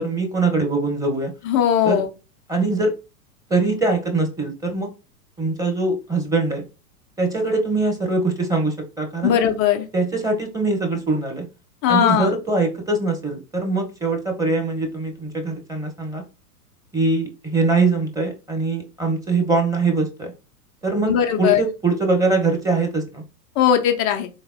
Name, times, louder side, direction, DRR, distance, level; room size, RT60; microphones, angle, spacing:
voice 1, 0.0-1.3 1.8-2.0 2.5-2.9 3.5-4.9 5.4-6.6 7.2-9.4 9.9-11.5 11.9-16.2 16.9-20.3 20.8-23.2, right 3 dB, 5° right, 2 dB, 0.9 m, -22 dB
voice 2, 1.4-2.1 9.2-9.9 11.8-12.3 21.0-21.6 23.6-24.3, left 9 dB, 25° left, 5 dB, 0.3 m, -18 dB
4.0 x 3.3 x 2.6 m, 0.30 s
hypercardioid pair, 105°, 46 cm